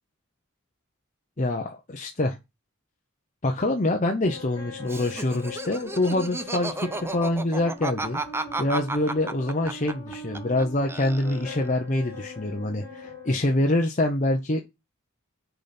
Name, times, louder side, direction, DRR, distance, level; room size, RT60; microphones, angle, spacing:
voice 1, 1.4-2.4 3.4-8.2 8.6-14.6, left 1 dB, 35° left, 2 dB, 0.9 m, -25 dB
sound 1, 4.2-13.3, left 2 dB, 20° left, 3.6 m, -41 dB
Laughter, 4.8-10.6 10.9-11.7, right 2 dB, 10° right, 0.6 m, -33 dB
6.9 x 4.2 x 5.9 m, 0.23 s
head